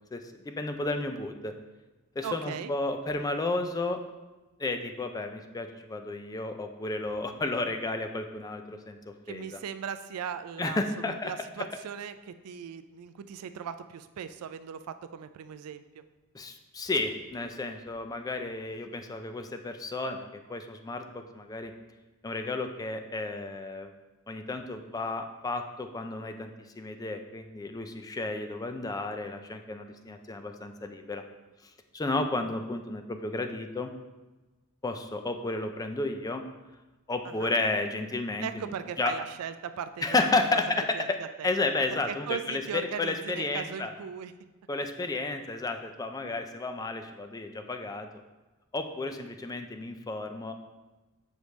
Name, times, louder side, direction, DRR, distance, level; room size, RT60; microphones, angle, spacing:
voice 1, 0.1-1.5 2.2-4.0 4.6-9.6 10.6-11.3 16.3-20.2 20.5-21.7 22.2-23.9 24.3-26.5 26.8-31.2 31.9-33.9 34.8-36.4 37.1-38.7 39.0-39.2 40.0-41.2 41.4-43.9 44.7-48.1 48.7-50.5, left 2 dB, 15° left, 7 dB, 0.3 m, -32 dB
voice 2, 2.2-2.7 9.3-16.0 37.2-37.5 38.4-40.6 40.9-41.5 41.9-44.3, right 7 dB, 85° right, 11 dB, 0.4 m, -38 dB
6.3 x 5.1 x 3.1 m, 1.1 s
head